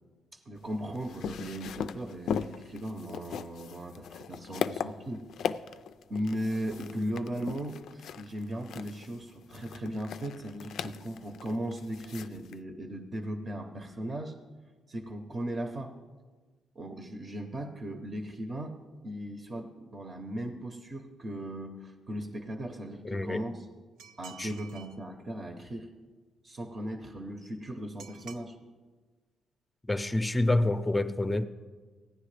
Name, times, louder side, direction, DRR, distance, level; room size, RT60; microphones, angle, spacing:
voice 1, 0.3-5.2 6.1-14.4 14.9-15.9 16.7-18.8 19.0-23.7 24.2-25.9 26.4-28.5, right 1 dB, 40° right, 6 dB, 0.8 m, -37 dB
sound 1, 0.6-12.6, left 8 dB, 70° left, 0.3 m, -38 dB
voice 2, 23.0-23.4 24.4-24.5 29.9-31.4, left 2 dB, 10° left, 10 dB, 0.6 m, -27 dB
sound 2, 24.0-25.0 28.0-28.5, right 7 dB, 80° right, 0.5 m, -49 dB
15.0 x 9.5 x 3.3 m, 1.4 s
cardioid pair, 90°, 0 cm